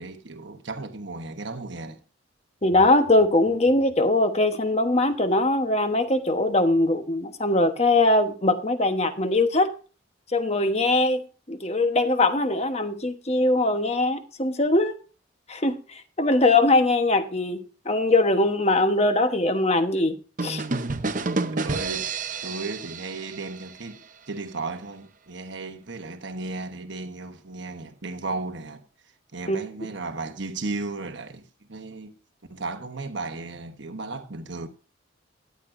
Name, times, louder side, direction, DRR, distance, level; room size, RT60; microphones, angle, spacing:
voice 1, 0.0-2.0 21.5-22.1 22.4-32.2 32.5-34.7, right 3 dB, 60° right, 1.1 m, -35 dB
voice 2, 2.6-9.7 10.3-11.2 11.5-14.9 15.5-20.1 20.4-20.6 29.5-29.6, left 2 dB, 30° left, 1.1 m, -21 dB
sound 1, 20.4-24.1, right 3 dB, 40° right, 0.7 m, -30 dB
13.5 x 10.5 x 2.6 m
head